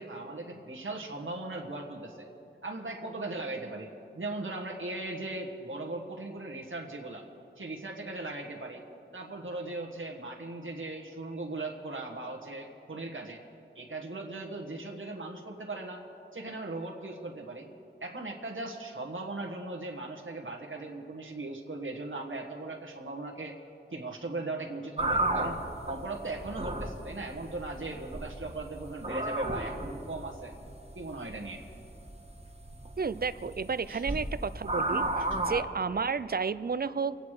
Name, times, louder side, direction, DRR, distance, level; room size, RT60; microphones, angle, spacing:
voice 1, 0.0-2.2 2.6-7.2 7.6-8.8 9.1-13.4 13.7-16.0 16.3-17.7 18.0-23.6 23.9-30.5 30.9-31.6 33.9-34.0, right 2 dB, 70° right, -1 dB, 1.4 m, -38 dB
sound 1, 25.0-35.6, right 2 dB, 30° right, 1.5 m, -34 dB
voice 2, 33.0-37.2, right 5 dB, 50° right, 15 dB, 0.5 m, -32 dB
25.0 x 9.3 x 4.9 m, 2.8 s
wide cardioid pair, 50°, 21 cm